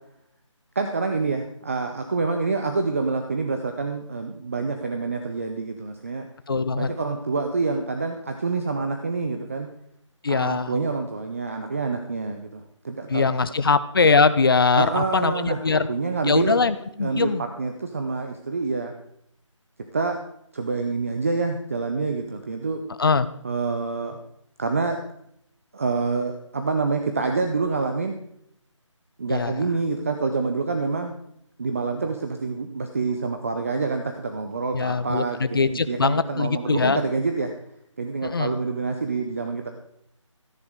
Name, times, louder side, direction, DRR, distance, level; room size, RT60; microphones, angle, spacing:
voice 1, 0.8-6.3 6.8-9.7 10.3-13.2 14.8-16.6 17.0-18.9 19.9-20.2 20.5-22.8 23.4-24.2 24.6-25.0 25.7-28.2 29.2-31.1 31.6-37.5 38.0-39.7, right 4 dB, 25° right, 5 dB, 0.6 m, -27 dB
voice 2, 6.5-6.9 10.2-10.8 13.1-15.9 16.2-17.4 23.0-23.3 29.3-29.5 34.7-37.0 38.2-38.5, left 4 dB, 45° left, 13 dB, 0.7 m, -22 dB
13.5 x 10.5 x 3.7 m, 0.74 s
figure-of-eight pair, 165°, 17 cm